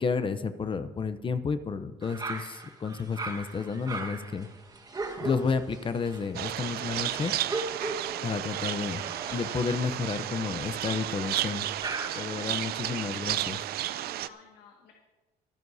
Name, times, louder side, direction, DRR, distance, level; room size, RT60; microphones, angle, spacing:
voice 1, 0.0-4.5 5.2-7.3 8.2-9.0 9.3-11.7 12.2-13.6, left 5 dB, 30° left, 10 dB, 0.7 m, -31 dB
sound 1, 2.0-13.0, right 3 dB, 20° right, 1.4 m, -39 dB
sound 2, 6.3-14.3, right 13 dB, 65° right, 0.5 m, -33 dB
voice 2, 12.0-12.8 13.9-14.9, left 6 dB, 70° left, 0 dB, 1.9 m, -55 dB
24.0 x 11.0 x 2.7 m, 1.2 s
cardioid pair, 110°, 17 cm